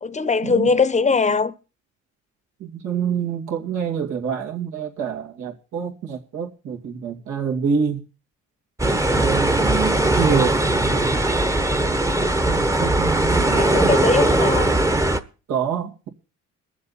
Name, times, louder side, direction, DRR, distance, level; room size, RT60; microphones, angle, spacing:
voice 1, 0.0-1.5 13.4-14.7, left 4 dB, 25° left, 0.9 m, -21 dB
voice 2, 2.6-8.0 9.1-11.2 12.4-14.2 15.5-16.1, right 7 dB, 80° right, 2.6 m, -27 dB
sound 1, 8.8-15.2, right 1 dB, 10° right, 1.0 m, -19 dB
21.5 x 7.4 x 4.2 m
cardioid pair, 90°, 30 cm